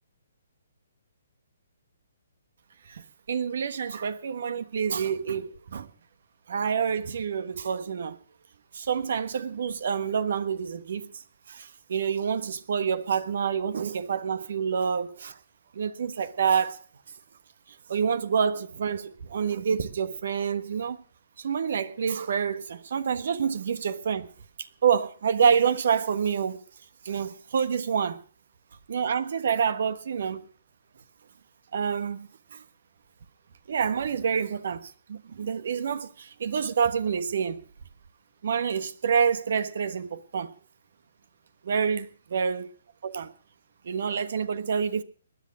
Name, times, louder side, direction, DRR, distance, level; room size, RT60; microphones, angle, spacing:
voice 1, 2.9-5.9 6.5-8.2 8.7-11.1 11.5-15.4 15.7-16.8 17.9-21.0 21.4-24.3 24.8-26.6 27.0-28.2 28.9-30.5 31.7-32.6 33.7-37.6 38.4-40.5 41.6-42.7 43.0-43.3 43.8-45.0, right 7 dB, 60° right, 1.3 m, -27 dB
20.5 x 10.5 x 6.2 m
figure-of-eight pair, 135°, 0 cm